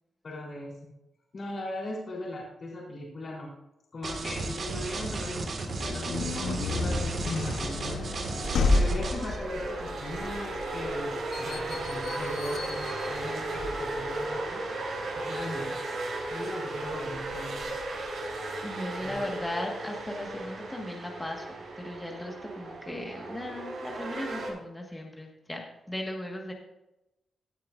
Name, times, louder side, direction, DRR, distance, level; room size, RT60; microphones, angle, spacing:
voice 1, 0.2-0.9 1.3-3.5 3.9-8.4 8.7-11.1 11.4-15.9 16.3-17.7 19.0-19.2, left 1 dB, 50° left, -4 dB, 3.8 m, -39 dB
sound 1, 4.0-9.4, right 3 dB, 60° right, 1.9 m, -34 dB
sound 2, 5.6-14.3, left 3 dB, 85° left, 1.0 m, -32 dB
sound 3, 7.4-24.5, right 2 dB, 80° right, 4.1 m, -35 dB
voice 2, 18.6-26.5, left 1 dB, 15° left, 0 dB, 1.6 m, -37 dB
16.5 x 9.1 x 2.6 m, 0.91 s
wide cardioid pair, 120°, 0 cm